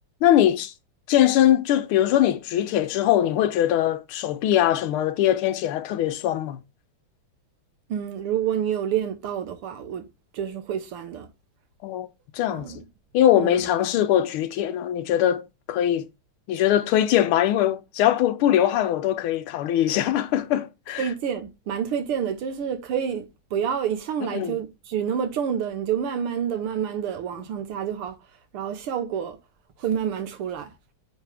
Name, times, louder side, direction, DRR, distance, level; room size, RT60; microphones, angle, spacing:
voice 1, 0.2-0.7 1.1-6.6 11.8-12.1 12.3-12.7 13.1-16.1 16.5-21.0 24.3-24.6, left 11 dB, 75° left, 1.6 m, -21 dB
voice 2, 7.9-10.1 10.3-11.3 12.5-12.9 13.4-13.6 21.0-28.2 28.5-29.4 29.8-30.7, right 8 dB, 85° right, 2.0 m, -28 dB
8.8 x 4.0 x 3.4 m
omnidirectional pair, 2.4 m